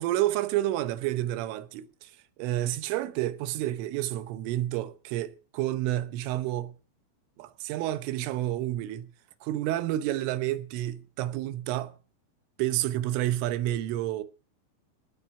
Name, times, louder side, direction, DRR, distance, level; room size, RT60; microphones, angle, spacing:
voice 1, 0.0-1.8 2.4-6.8 7.4-9.1 9.4-11.9 12.6-14.2, right 14 dB, 80° right, 3.5 m, -29 dB
18.5 x 9.4 x 5.8 m
omnidirectional pair, 5.9 m